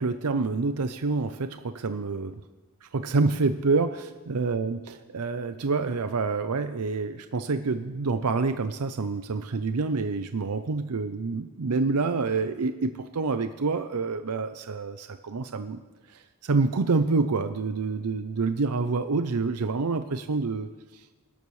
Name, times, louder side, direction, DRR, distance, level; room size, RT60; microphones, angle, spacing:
voice 1, 0.0-2.3 2.8-15.8 16.1-21.0, right 4 dB, 80° right, 9 dB, 0.6 m, -27 dB
26.5 x 12.5 x 3.2 m, 1.3 s
head